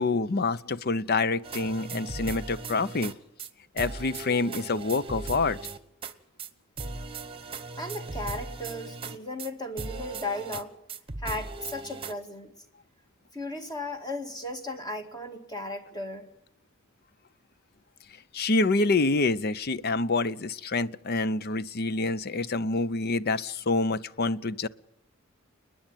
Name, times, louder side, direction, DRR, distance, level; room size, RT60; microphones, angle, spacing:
voice 1, 0.0-3.1 3.7-5.6 18.3-24.7, left 3 dB, 50° left, 16 dB, 0.6 m, -27 dB
sound 1, 1.4-3.1 3.4-3.5 3.8-6.1 6.4-6.5 6.8-9.5 9.8-10.6 10.9-12.1, right 3 dB, 25° right, 1.2 m, -38 dB
voice 2, 7.8-10.7 11.2-12.5 13.3-16.3, left 1 dB, 20° left, 6 dB, 2.1 m, -36 dB
29.5 x 10.0 x 9.0 m, 0.87 s
head